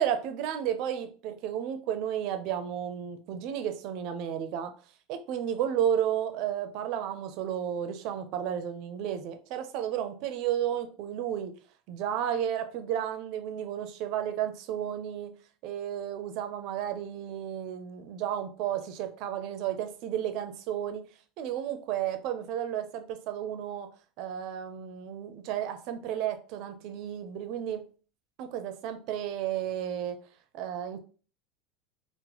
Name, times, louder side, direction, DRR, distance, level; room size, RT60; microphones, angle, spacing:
voice 1, 0.0-4.7 5.1-11.5 11.9-15.4 15.6-21.1 21.4-23.9 24.2-27.9 28.4-30.2 30.5-31.0, right 10 dB, 60° right, 0.5 m, -32 dB
3.8 x 2.1 x 2.9 m
supercardioid pair, 125°, 0 cm